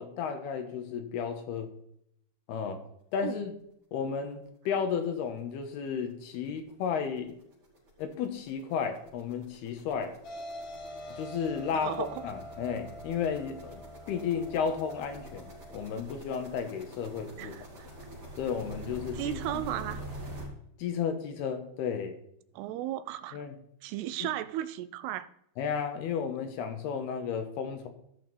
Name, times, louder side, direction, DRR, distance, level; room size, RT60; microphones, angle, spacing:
voice 1, 0.0-1.7 2.5-2.8 3.1-3.5 3.9-7.4 8.0-10.2 11.1-13.8 14.1-17.6 18.4-19.4 20.8-22.2 23.3-23.5 24.2-24.3 25.6-27.9, left 7 dB, 75° left, 3.1 m, -33 dB
sound 1, 5.0-5.1 5.5-5.6 5.9-20.5, right 1 dB, 35° right, 4.9 m, -46 dB
sound 2, 10.2-15.8, equal, 60° left, 2.9 m, -45 dB
voice 2, 11.7-12.3 17.4-17.9 19.1-20.0 22.5-23.5 23.8-25.3, right 12 dB, 85° right, 2.5 m, -35 dB
15.0 x 6.6 x 4.2 m
omnidirectional pair, 4.7 m